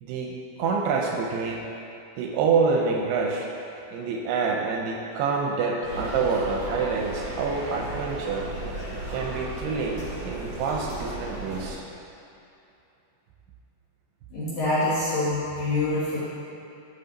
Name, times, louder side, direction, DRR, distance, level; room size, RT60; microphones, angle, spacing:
voice 1, 0.0-1.7 2.2-3.5 3.9-8.5 9.1-11.8, right 5 dB, 80° right, 1 dB, 2.5 m, -27 dB
sound 1, 5.8-11.7, right 1 dB, 40° right, 2.0 m, -35 dB
voice 2, 14.3-16.2, left 2 dB, 60° left, -10 dB, 2.2 m, -25 dB
11.0 x 6.8 x 4.0 m, 2.7 s
omnidirectional pair, 5.0 m